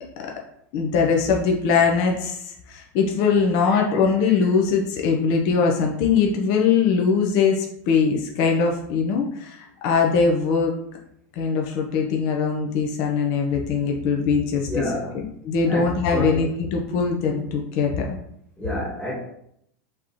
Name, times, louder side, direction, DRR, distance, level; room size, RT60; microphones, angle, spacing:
voice 1, 0.7-10.8 11.4-14.8 15.1-18.2, left 5 dB, 55° left, 0 dB, 0.7 m, -21 dB
voice 2, 14.7-15.2 15.7-16.4 18.6-19.1, equal, 10° left, -5 dB, 1.6 m, -29 dB
5.0 x 3.0 x 3.0 m, 0.72 s
hypercardioid pair, 115°, 9 cm